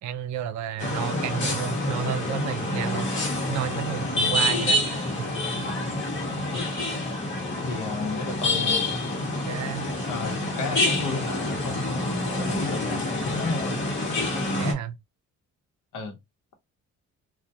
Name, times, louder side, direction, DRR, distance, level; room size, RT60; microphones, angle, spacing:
voice 1, 0.0-3.1 3.5-5.3 9.5-9.9 14.5-15.0, right 10 dB, 70° right, 0.5 m, -32 dB
sound 1, 0.8-14.7, left 1 dB, 40° left, 1.1 m, -27 dB
voice 2, 7.6-8.8 10.1-13.8 15.9-16.2, left 3 dB, 80° left, 0.8 m, -33 dB
2.2 x 2.1 x 2.6 m
cardioid pair, 90°, 30 cm